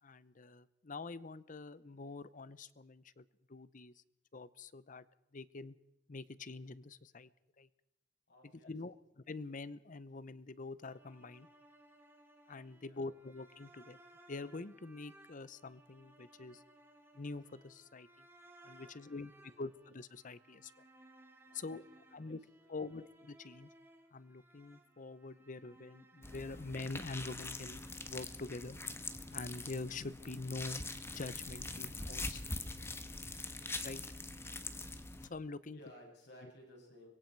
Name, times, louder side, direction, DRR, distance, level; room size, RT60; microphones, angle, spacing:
voice 1, 0.0-3.9 4.3-5.0 5.3-5.8 6.1-7.3 7.6-7.7 8.6-11.5 12.5-14.0 14.3-16.6 17.1-18.3 18.6-20.7 21.5-21.8 22.1-22.4 22.7-23.7 24.1-28.8 29.3-32.4 33.8-34.0 35.2-35.8 36.4-36.5, left 3 dB, 45° left, 17 dB, 0.8 m, -45 dB
voice 2, 8.3-8.7 12.8-13.1 18.8-19.6 21.4-21.8 22.1-23.0 35.6-37.1, left 1 dB, 65° left, -1 dB, 7.6 m, -59 dB
sound 1, 10.8-27.9, right 1 dB, 15° right, 3.0 m, -63 dB
sound 2, 26.2-35.3, left 2 dB, 15° left, 1.2 m, -43 dB
25.5 x 22.5 x 4.6 m, 0.82 s
head